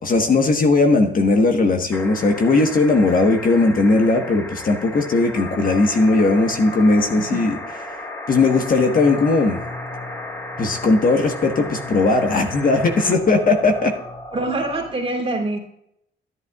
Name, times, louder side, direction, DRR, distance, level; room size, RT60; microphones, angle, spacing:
voice 1, 0.0-7.5 8.3-9.6 10.6-13.9, left 3 dB, 45° left, 4 dB, 1.3 m, -18 dB
sound 1, 1.9-13.2 14.6-14.7, left 1 dB, 10° left, 1.4 m, -36 dB
sound 2, 5.3-14.9, left 1 dB, 30° left, 2.0 m, -36 dB
voice 2, 14.3-15.6, right 2 dB, 30° right, 0 dB, 2.8 m, -25 dB
11.0 x 10.5 x 2.4 m, 0.74 s
cardioid pair, 90°, 20 cm